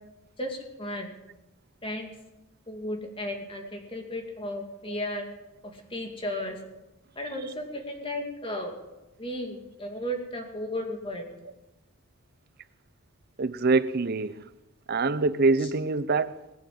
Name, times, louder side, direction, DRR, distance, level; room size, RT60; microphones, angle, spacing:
voice 1, 0.4-1.1 1.8-2.1 2.7-5.2 5.7-6.6 7.2-8.7 9.2-11.3 15.6-15.7, left 1 dB, 25° left, 2.5 m, -34 dB
voice 2, 13.4-14.4 14.9-16.6, right 3 dB, 45° right, 0.6 m, -25 dB
20.5 x 9.2 x 7.7 m
head